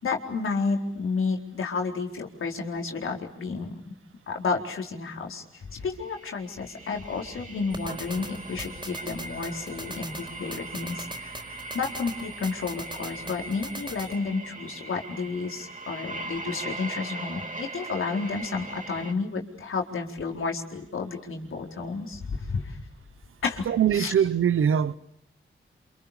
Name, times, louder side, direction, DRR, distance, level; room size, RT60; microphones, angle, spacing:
voice 1, 0.0-4.0 4.3-22.8 23.4-23.7 23.9-24.1, left 4 dB, 80° left, 4.3 m, -31 dB
sound 1, 6.0-19.1, right 2 dB, 40° right, 3.2 m, -40 dB
sound 2, 7.7-14.2, right 1 dB, 25° right, 5.0 m, -42 dB
voice 2, 23.7-25.0, right 8 dB, 85° right, 1.1 m, -22 dB
29.0 x 28.0 x 6.9 m
cardioid pair, 55°, 21 cm